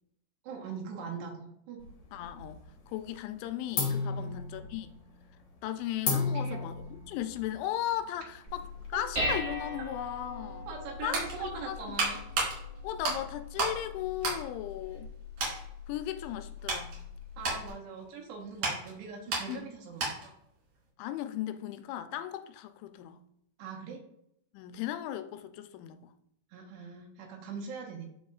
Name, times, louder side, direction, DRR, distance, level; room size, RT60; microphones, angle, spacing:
voice 1, 0.4-1.8 4.1-4.3 6.3-6.6 8.9-9.0 10.7-12.2 17.4-20.3 23.6-24.0 26.5-28.1, right 5 dB, 75° right, 3.1 m, -41 dB
sound 1, 1.8-2.7 3.0-3.4 3.7-8.9, left 4 dB, 60° left, 1.5 m, -34 dB
voice 2, 2.1-4.9 5.6-10.7 11.0-12.0 12.8-15.1 15.9-17.0 19.5-19.7 21.0-23.2 24.5-26.1, left 12 dB, 90° left, 2.9 m, -37 dB
Dishes pots and pans, 8.5-17.7, left 1 dB, 25° right, 0.8 m, -40 dB
sound 2, 10.7-13.8 14.1-15.1 15.4-15.6 16.2-20.4 20.7-20.9, right 3 dB, 50° right, 3.2 m, -34 dB
12.0 x 4.2 x 2.4 m
omnidirectional pair, 5.2 m